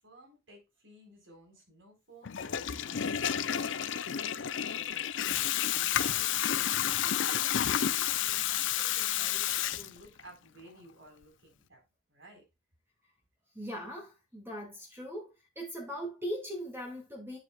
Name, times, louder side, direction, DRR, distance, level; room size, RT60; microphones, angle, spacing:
voice 1, 0.0-11.8 12.1-12.4, right 1 dB, 75° right, 4.1 m, -55 dB
Water tap faucet / Toilet flush, 2.2-10.3, left 10 dB, 70° left, 0.5 m, -30 dB
voice 2, 13.5-15.3 15.6-17.4, equal, 10° right, 2.2 m, -39 dB
9.6 x 7.4 x 2.3 m
head